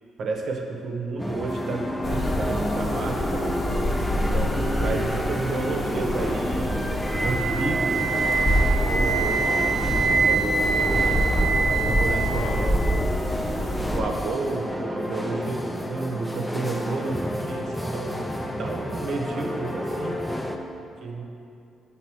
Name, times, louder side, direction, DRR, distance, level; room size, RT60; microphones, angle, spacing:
voice 1, 0.2-3.5 4.1-6.8 7.2-8.0 8.8-9.4 10.2-13.1 13.9-18.3 18.6-20.1 21.0-21.2, right 3 dB, 65° right, 2 dB, 0.9 m, -31 dB
sound 1, 1.2-20.6, equal, 5° left, 0.5 m, -30 dB
sound 2, 2.0-14.0, equal, 25° left, 0.9 m, -26 dB
Wind instrument woodwind instrument, 7.1-13.1, right 5 dB, 25° right, 0.9 m, -25 dB
7.4 x 3.9 x 6.0 m, 2.5 s
cardioid pair, 90°, 0 cm